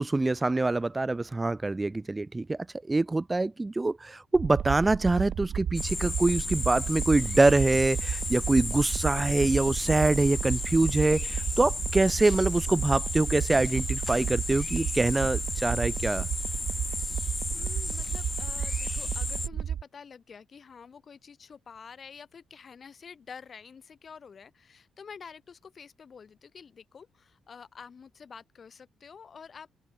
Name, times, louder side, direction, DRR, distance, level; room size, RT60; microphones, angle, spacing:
voice 1, 0.0-2.6 2.9-16.3, right 2 dB, 20° right, 0.5 m, -25 dB
sound 1, 4.3-19.8, right 9 dB, 65° right, 0.6 m, -33 dB
sound 2, 5.7-19.5, left 3 dB, 20° left, 0.7 m, -34 dB
voice 2, 17.5-29.7, left 6 dB, 45° left, 3.5 m, -48 dB
open air
cardioid pair, 90°, 0 cm